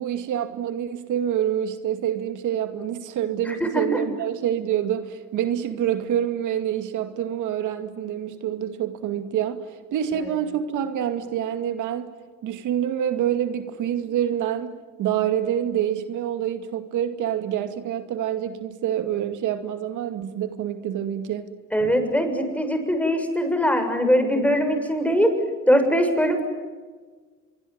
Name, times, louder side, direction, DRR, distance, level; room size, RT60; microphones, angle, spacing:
voice 1, 0.0-12.1 12.4-21.5, right 10 dB, 85° right, 8 dB, 2.4 m, -27 dB
voice 2, 3.5-4.0 21.7-25.3 25.7-26.4, equal, 5° left, 6 dB, 6.9 m, -21 dB
25.5 x 24.0 x 9.6 m, 1.4 s
cardioid pair, 90°, 30 cm